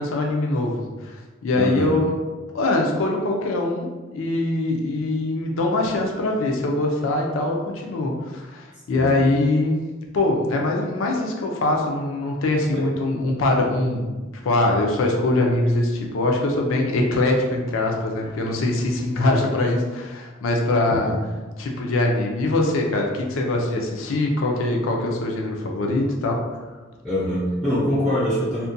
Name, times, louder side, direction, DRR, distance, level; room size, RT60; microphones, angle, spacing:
voice 1, 0.0-2.2 2.5-9.8 10.1-14.1 14.4-21.1 21.6-26.7, left 2 dB, 90° left, 1 dB, 0.4 m, -23 dB
voice 2, 1.5-1.9 8.9-9.1 12.7-12.8 20.9-21.1 27.0-28.7, equal, 5° left, -11 dB, 0.4 m, -24 dB
2.5 x 2.1 x 2.5 m, 1.2 s
head